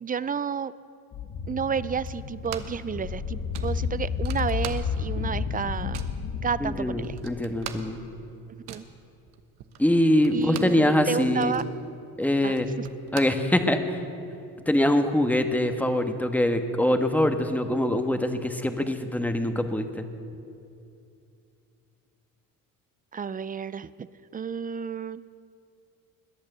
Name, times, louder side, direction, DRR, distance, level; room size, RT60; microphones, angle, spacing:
voice 1, 0.0-0.7 1.5-6.1 6.4-7.2 8.7-8.9 10.3-11.6 12.4-12.9 23.1-24.1 24.3-25.2, right 6 dB, 25° right, 17 dB, 0.4 m, -31 dB
sound 1, 1.1-8.2, left 6 dB, 50° left, 1.1 m, -32 dB
sound 2, 2.0-2.9 3.1-3.2 3.5-5.2 5.5-6.2 6.7-6.8 7.0-10.9 11.2-14.0, right 10 dB, 80° right, 1.1 m, -42 dB
voice 2, 6.6-8.0 9.8-11.6 12.2-12.7 13.1-14.0 14.7-20.1, left 1 dB, 5° left, 6 dB, 1.3 m, -24 dB
21.5 x 8.7 x 6.7 m, 2.6 s
supercardioid pair, 75°, 40 cm